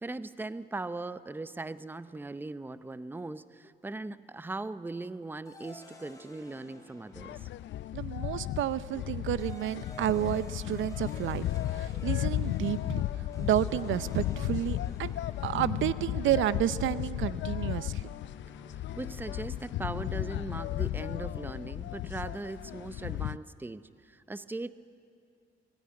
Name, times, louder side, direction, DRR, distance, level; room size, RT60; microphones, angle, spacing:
voice 1, 0.0-7.5 18.7-24.7, right 2 dB, 10° right, 14 dB, 0.7 m, -39 dB
sound 1, 5.4-8.0 9.1-20.2, left 1 dB, 15° left, 4.3 m, -52 dB
sound 2, 7.1-23.4, left 14 dB, 70° left, 0.5 m, -34 dB
voice 2, 7.9-13.0 13.4-15.1 15.4-18.1, right 12 dB, 75° right, 15 dB, 0.6 m, -31 dB
22.5 x 17.5 x 9.8 m, 2.4 s
cardioid pair, 90°, 20 cm